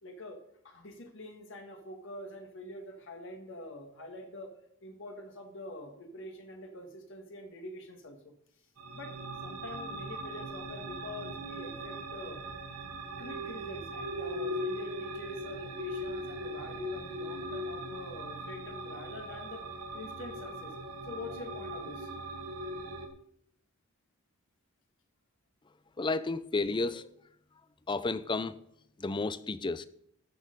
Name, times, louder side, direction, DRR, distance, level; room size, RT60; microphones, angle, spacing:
voice 1, 0.0-4.5 4.8-8.3 8.9-9.1 9.4-12.4 13.2-19.6 19.9-20.7 21.0-22.1, left 1 dB, 60° left, 4 dB, 1.6 m, -45 dB
sound 1, 8.8-23.1, right 1 dB, 90° right, 1.3 m, -40 dB
voice 2, 26.0-27.1 27.9-28.5 29.0-29.8, left 3 dB, 20° left, 15 dB, 0.4 m, -32 dB
13.5 x 6.4 x 5.3 m, 0.70 s
head